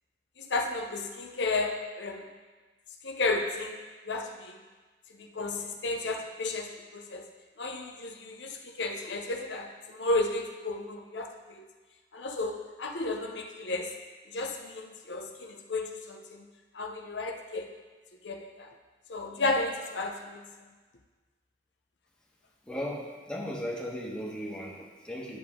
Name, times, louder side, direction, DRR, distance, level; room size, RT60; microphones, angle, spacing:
voice 1, 0.4-2.3 3.0-3.8 4.1-4.6 5.2-7.3 7.6-11.7 12.1-13.9 14.3-16.5 16.7-17.7 18.2-18.7 19.1-20.4, left 2 dB, 85° left, 3 dB, 0.8 m, -33 dB
voice 2, 22.7-25.4, equal, 5° left, -3 dB, 1.3 m, -36 dB
10.0 x 6.9 x 3.7 m, 1.3 s
head